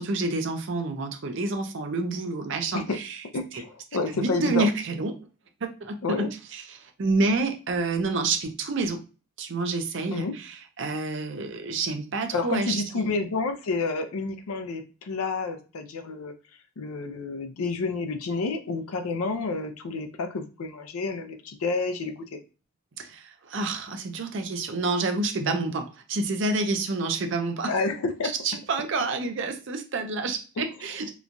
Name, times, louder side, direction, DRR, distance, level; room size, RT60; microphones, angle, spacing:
voice 1, 0.0-3.2 3.5-3.6 4.1-5.1 5.6-6.3 6.5-9.0 9.4-13.1 23.0-27.7 28.2-31.1, right 3 dB, 55° right, 5 dB, 0.5 m, -28 dB
voice 2, 3.3-4.7 6.0-6.3 10.1-10.4 12.3-16.3 16.8-22.4 27.7-28.3 30.6-30.7, left 3 dB, 80° left, 7 dB, 0.5 m, -29 dB
2.9 x 2.2 x 2.5 m, 0.34 s
head